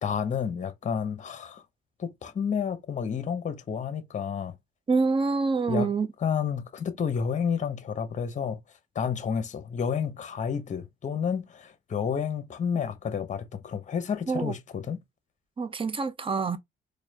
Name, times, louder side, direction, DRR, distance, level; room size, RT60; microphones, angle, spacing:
voice 1, 0.0-1.6 2.0-4.6 5.7-5.9 6.2-8.6 8.9-15.0, left 7 dB, 40° left, 0.8 m, -30 dB
voice 2, 4.9-6.1 14.3-14.5 15.6-16.6, right 4 dB, 25° right, 0.6 m, -26 dB
4.2 x 2.5 x 2.7 m
cardioid pair, 90°, 20 cm